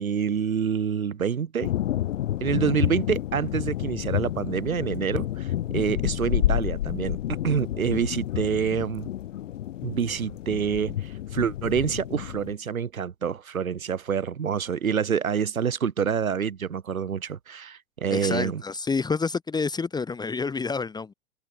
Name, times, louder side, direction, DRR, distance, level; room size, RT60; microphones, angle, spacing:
voice 1, 0.0-1.7 2.4-9.1 9.8-18.6, right 7 dB, 70° right, 4.0 m, -27 dB
sound 1, 1.6-12.5, left 12 dB, 60° left, 1.8 m, -29 dB
voice 2, 18.1-21.1, left 4 dB, 10° left, 1.2 m, -28 dB
figure-of-eight pair, 100°, 42 cm